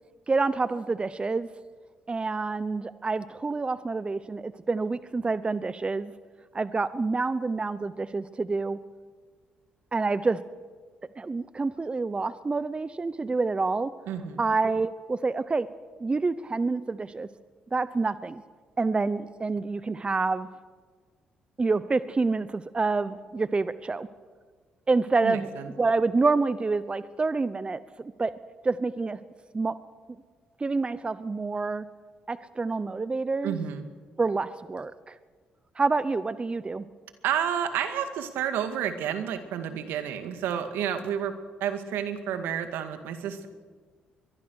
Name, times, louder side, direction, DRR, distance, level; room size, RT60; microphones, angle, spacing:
voice 1, 0.3-1.5 2.1-6.1 6.5-8.8 9.9-10.4 11.2-13.9 14.4-15.7 16.0-17.3 17.7-18.4 18.8-20.5 21.6-24.1 24.9-25.5 25.8-28.3 28.6-29.2 29.5-29.8 30.6-31.9 32.3-33.6 34.2-35.2 35.8-36.9, right 3 dB, 30° right, 15 dB, 0.9 m, -27 dB
voice 2, 14.1-14.5 25.2-25.7 33.4-33.8 37.2-41.3 41.6-43.5, right 9 dB, 80° right, 8 dB, 2.1 m, -30 dB
23.0 x 22.0 x 6.5 m, 1.5 s
supercardioid pair, 55°, 4 cm